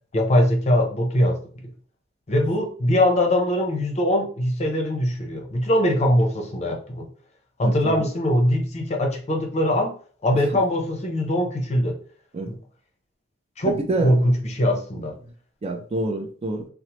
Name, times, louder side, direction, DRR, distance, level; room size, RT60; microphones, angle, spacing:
voice 1, 0.1-1.7 2.3-7.1 7.6-9.9 10.2-12.0 12.5-12.6 13.6-15.1, left 1 dB, 35° left, 2 dB, 0.6 m, -22 dB
voice 2, 7.6-8.1 12.3-12.5 13.6-14.1 15.6-16.7, right 2 dB, 30° right, 3 dB, 0.4 m, -27 dB
3.0 x 2.0 x 2.9 m, 0.43 s
head